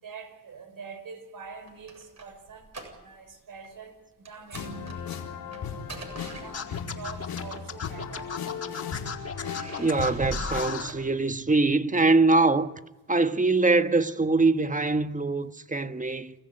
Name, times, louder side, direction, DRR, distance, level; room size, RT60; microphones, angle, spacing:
voice 1, 0.0-2.7 3.0-5.1 5.5-5.6 6.2-8.3, right 5 dB, 65° right, 5.8 m, -45 dB
sound 1, 1.5-3.4 3.6-3.9 4.3-7.0 7.9-8.8 9.3-11.6, right 2 dB, 45° right, 7.7 m, -41 dB
sound 2, 4.5-10.8, left 7 dB, 75° left, 3.7 m, -37 dB
Scratching (performance technique), 6.5-10.9, left 5 dB, 45° left, 4.4 m, -35 dB
voice 2, 9.8-12.7 13.1-16.3, right 3 dB, 20° right, 1.5 m, -23 dB
28.5 x 14.5 x 9.2 m
supercardioid pair, 55°, 36 cm